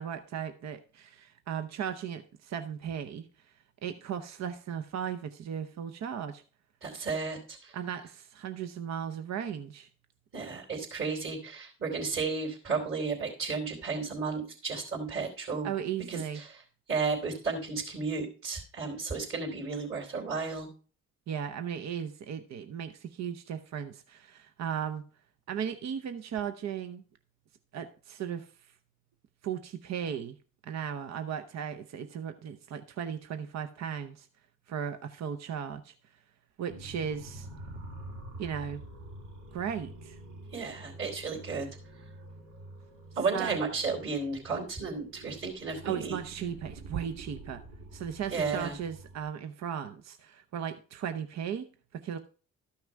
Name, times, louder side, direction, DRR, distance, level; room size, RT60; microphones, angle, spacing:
voice 1, 0.0-3.5 3.8-6.4 7.7-9.9 15.6-16.4 21.3-25.0 25.5-27.0 27.7-28.5 29.4-30.4 30.6-34.3 34.7-35.9 36.6-37.5 38.4-38.8 39.5-40.2 43.3-43.6 45.7-47.6 47.9-52.2, right 8 dB, 60° right, 0.8 m, -36 dB
voice 2, 6.8-7.8 10.3-15.7 16.1-16.6 16.9-20.7 40.5-41.7 43.1-46.2 48.3-48.7, right 4 dB, 45° right, 3.1 m, -33 dB
sound 1, 36.7-49.2, right 1 dB, 90° right, 2.6 m, -47 dB
13.0 x 5.8 x 4.6 m
cardioid pair, 90°, 30 cm